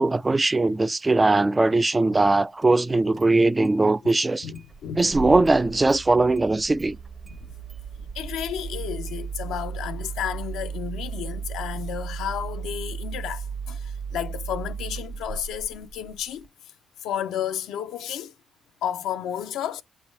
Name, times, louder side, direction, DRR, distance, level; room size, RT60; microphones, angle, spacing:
voice 1, 0.0-4.5 5.0-7.0, right 2 dB, 20° right, 0.4 m, -20 dB
Engine starting, 2.6-2.7 3.1-3.8 4.1-4.2 4.5-16.5, right 6 dB, 45° right, 1.2 m, -35 dB
voice 2, 4.4-5.4 8.0-16.5 17.0-18.3 18.8-19.8, left 10 dB, 85° left, 0.6 m, -32 dB
7.2 x 3.4 x 4.3 m
supercardioid pair, 70°, 0 cm